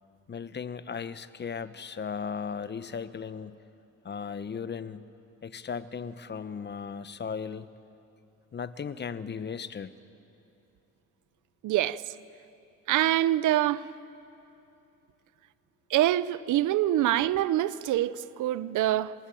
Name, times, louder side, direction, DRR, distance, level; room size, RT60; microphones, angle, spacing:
voice 1, 0.3-3.6 4.0-5.1 5.4-7.7 8.5-9.9, left 6 dB, 35° left, 0.9 m, -36 dB
voice 2, 11.6-12.0 12.9-13.9 15.9-19.1, right 13 dB, 80° right, 0.7 m, -25 dB
29.5 x 16.0 x 9.1 m
cardioid pair, 90°, 30 cm